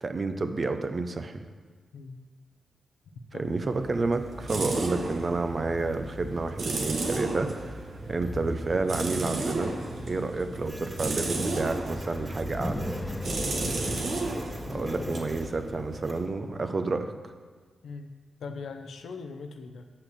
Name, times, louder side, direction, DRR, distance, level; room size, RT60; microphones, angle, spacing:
voice 1, 0.0-1.4 3.3-7.8 8.1-9.8 10.1-12.8 14.7-17.1, right 3 dB, 45° right, 8 dB, 0.7 m, -30 dB
voice 2, 1.9-2.3 3.3-3.7 13.6-14.0 15.0-15.2 17.8-19.9, left 4 dB, 85° left, 6 dB, 0.7 m, -41 dB
sound 1, 3.5-16.2, right 2 dB, 70° right, 1.1 m, -34 dB
sound 2, 3.8-16.6, left 1 dB, 15° left, 0.5 m, -40 dB
Printer, 10.6-16.3, right 1 dB, 20° right, 2.3 m, -51 dB
6.5 x 5.8 x 6.4 m, 1.5 s
supercardioid pair, 50°, 0 cm